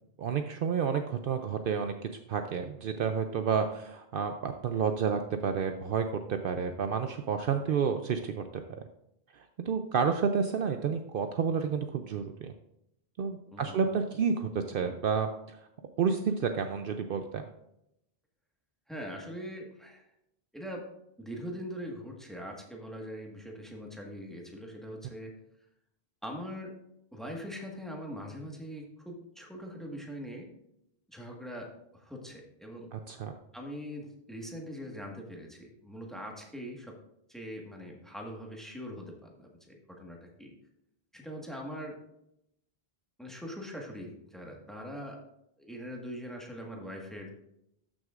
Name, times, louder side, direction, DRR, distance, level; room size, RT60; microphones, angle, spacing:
voice 1, 0.2-8.6 9.7-12.5 13.2-15.6 16.0-17.4 32.9-33.3, right 6 dB, 65° right, 7 dB, 0.7 m, -30 dB
voice 2, 13.5-13.9 18.9-20.0 20.5-20.9 21.2-25.3 26.2-26.8 27.1-30.5 31.1-32.9 33.5-36.9 37.3-40.5 41.1-42.0 43.2-45.2 45.6-47.3, equal, ahead, 0 dB, 1.4 m, -42 dB
13.5 x 6.2 x 2.5 m, 0.80 s
omnidirectional pair, 1.0 m